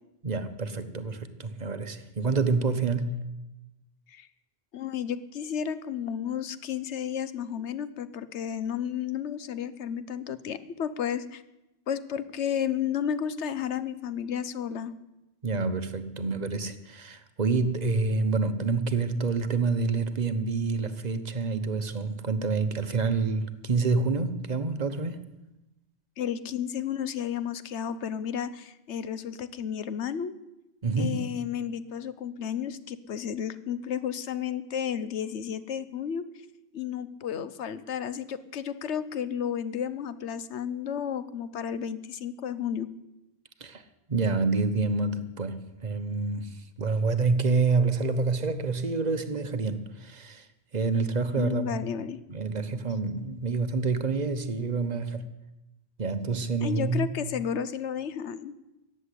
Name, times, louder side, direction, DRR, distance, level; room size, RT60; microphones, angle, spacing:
voice 1, 0.2-3.2 15.4-25.2 30.8-31.2 43.6-43.8 44.1-50.5 50.7-51.7 52.3-55.3 56.0-57.1, right 4 dB, 40° right, 1.0 m, -27 dB
voice 2, 4.7-11.4 11.9-14.9 26.2-30.3 31.0-36.3 36.7-42.9 51.4-52.2 56.6-58.5, left 8 dB, 80° left, 1.1 m, -32 dB
15.0 x 7.7 x 9.9 m
omnidirectional pair, 1.2 m